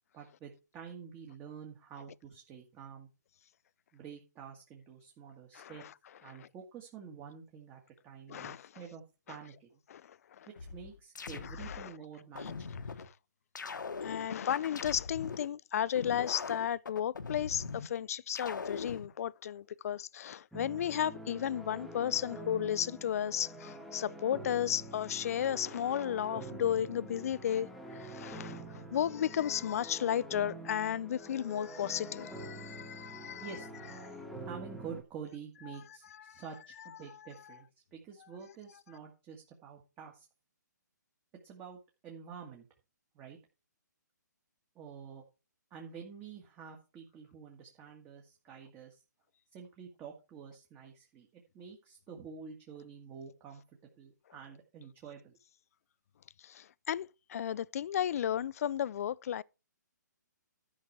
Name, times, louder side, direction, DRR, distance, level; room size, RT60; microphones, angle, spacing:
voice 1, 0.1-3.1 3.9-5.8 6.2-9.0 9.3-9.8 10.7-12.7 33.4-33.7 34.4-40.3 41.4-42.7 43.1-43.4 44.8-45.2 45.7-49.0 49.5-55.4, right 6 dB, 20° right, 2.0 m, -48 dB
voice 2, 8.3-8.7 9.9-10.0 11.6-11.9 14.0-33.5 36.3-36.4 56.4-59.4, left 10 dB, 50° left, 0.5 m, -34 dB
sound 1, 10.6-11.9 12.4-13.1 13.6-15.5 16.0-17.9 18.4-19.1, left 5 dB, 80° left, 1.3 m, -41 dB
sound 2, 20.5-35.0, right 1 dB, ahead, 1.5 m, -46 dB
12.5 x 6.0 x 4.8 m
hypercardioid pair, 145°, 10 cm